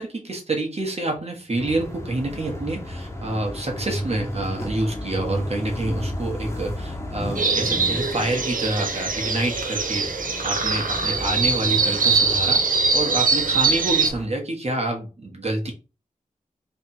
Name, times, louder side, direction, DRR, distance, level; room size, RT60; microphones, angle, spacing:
voice 1, 0.0-10.1 10.4-15.7, right 2 dB, 45° right, 1 dB, 1.4 m, -27 dB
sound 1, 1.6-14.3, equal, 20° left, 1.0 m, -33 dB
sound 2, 7.4-14.1, right 4 dB, 70° right, 0.6 m, -22 dB
3.4 x 2.4 x 4.2 m, 0.32 s
wide cardioid pair, 65°, 14 cm